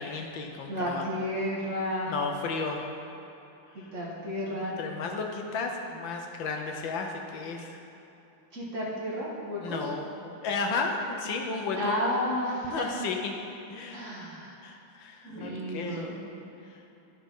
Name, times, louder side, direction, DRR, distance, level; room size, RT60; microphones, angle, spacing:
voice 1, 0.0-1.1 2.0-2.8 3.8-3.9 4.8-7.8 9.6-12.0 12.7-13.4 13.7-14.0 14.6-16.2 16.7-16.8, left 4 dB, 70° left, 2 dB, 1.5 m, -33 dB
voice 2, 0.7-2.2 3.7-4.8 8.5-9.9 11.7-13.1 13.9-14.5 15.2-16.2, equal, 40° right, -5 dB, 1.6 m, -32 dB
12.5 x 5.1 x 5.4 m, 3.0 s
omnidirectional pair, 2.2 m